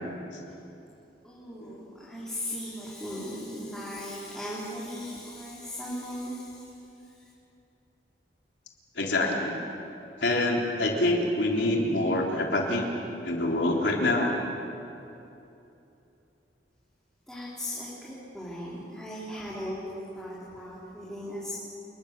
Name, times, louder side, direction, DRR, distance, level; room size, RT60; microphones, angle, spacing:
voice 1, 1.2-6.7 7.2-7.3 17.3-21.6, equal, 5° left, -8 dB, 4.0 m, -38 dB
voice 2, 9.0-9.6 10.2-12.9 13.2-14.3, left 1 dB, 90° left, 0 dB, 3.6 m, -26 dB
29.0 x 21.0 x 6.9 m, 2.8 s
head